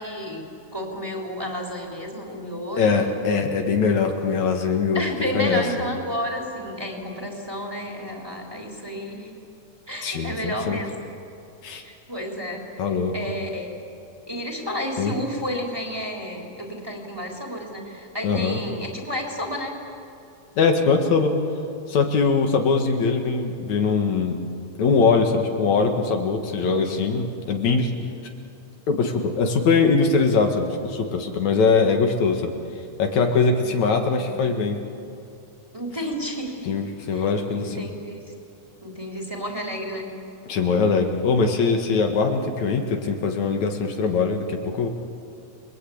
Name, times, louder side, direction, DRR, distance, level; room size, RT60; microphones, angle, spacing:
voice 1, 0.0-3.1 4.9-9.3 9.9-10.9 11.8-12.6 13.1-13.7 14.3-19.8 33.6-34.4 35.7-36.7 37.1-38.2 38.8-40.1, equal, 10° right, 0 dB, 3.5 m, -31 dB
voice 2, 2.8-5.6 10.0-10.8 11.6-11.8 12.8-13.1 15.0-15.1 18.2-18.6 20.6-21.3 21.9-24.4 24.8-27.9 28.9-32.5 33.0-34.8 36.6-37.9 40.5-44.9, left 4 dB, 70° left, 4 dB, 3.0 m, -22 dB
29.5 x 22.0 x 8.6 m, 2.7 s
omnidirectional pair, 3.3 m